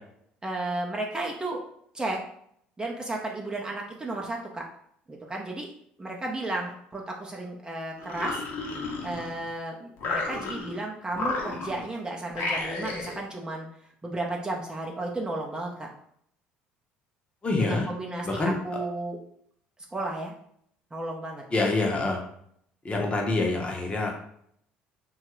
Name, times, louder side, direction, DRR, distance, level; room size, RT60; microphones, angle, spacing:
voice 1, 0.4-1.6 1.9-2.2 2.8-4.6 5.1-5.7 6.0-8.4 9.0-13.7 14.0-15.9 17.5-19.2 19.9-20.3 20.9-21.4, right 2 dB, 20° right, -1 dB, 0.6 m, -33 dB
sound 1, 8.0-9.5 10.0-10.8 11.1-11.9 12.3-13.2, left 3 dB, 60° left, 0.7 m, -32 dB
voice 2, 17.4-17.9 18.2-18.5 21.5-22.2 22.8-24.1, left 2 dB, 25° left, 0 dB, 0.8 m, -26 dB
2.8 x 2.3 x 3.0 m, 0.70 s
hypercardioid pair, 70°, 4 cm